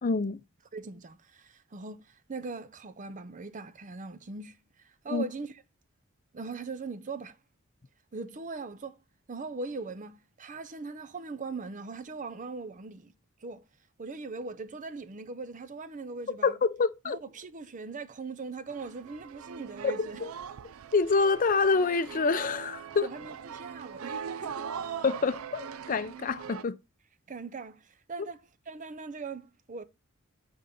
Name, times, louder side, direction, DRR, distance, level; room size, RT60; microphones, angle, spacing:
voice 1, 0.0-0.4 5.1-5.2 16.4-17.2 19.8-19.9 20.9-23.1 25.0-26.8, left 4 dB, 40° left, 0.5 m, -26 dB
voice 2, 0.7-4.6 4.8-5.5 6.3-7.4 8.1-9.0 9.3-13.1 13.4-13.6 14.0-16.6 17.0-20.2 23.0-24.7 27.3-29.8, right 4 dB, 40° right, 0.6 m, -40 dB
sound 1, 18.7-26.6, right 7 dB, 85° right, 0.5 m, -41 dB
9.2 x 3.8 x 4.2 m
head